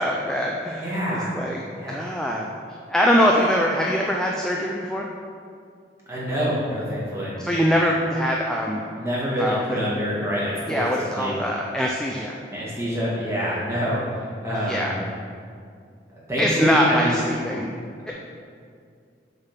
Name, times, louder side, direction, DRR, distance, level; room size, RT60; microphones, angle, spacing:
voice 1, 0.0-2.5 2.9-5.1 7.4-8.8 9.4-9.8 10.7-12.4 14.7-14.9 16.4-17.7 18.1-18.2, equal, 5° left, -2 dB, 0.3 m, -23 dB
voice 2, 0.8-1.3 1.8-1.9 6.1-7.3 8.9-10.9 11.1-11.3 12.5-15.0 16.1-17.1, equal, 15° right, -8 dB, 1.6 m, -26 dB
7.0 x 3.5 x 5.7 m, 2.2 s
head